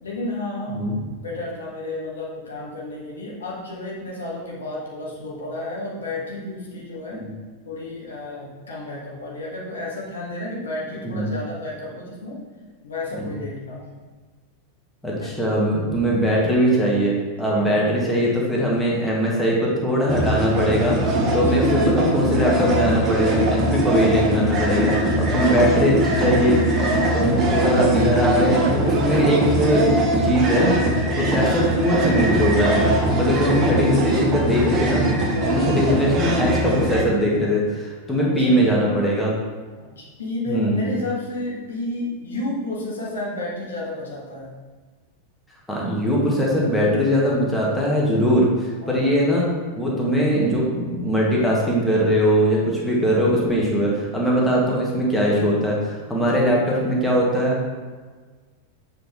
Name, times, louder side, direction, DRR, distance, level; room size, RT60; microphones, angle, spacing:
voice 1, 0.0-7.2 7.6-12.4 12.8-13.9 15.2-15.4 17.5-17.8 21.3-21.7 23.6-23.9 31.0-31.4 35.3-35.7 38.2-38.8 39.8-44.5 48.8-49.1 56.1-56.4, left 2 dB, 70° left, -4 dB, 1.6 m, -32 dB
voice 2, 15.0-26.6 27.1-30.7 31.1-35.0 35.4-39.3 40.5-40.9 45.7-49.5 49.8-57.7, equal, 5° left, -5 dB, 1.6 m, -21 dB
sound 1, 20.1-37.0, right 1 dB, 30° right, 1.2 m, -21 dB
7.6 x 4.1 x 3.6 m, 1.4 s
figure-of-eight pair, 90°, 0 cm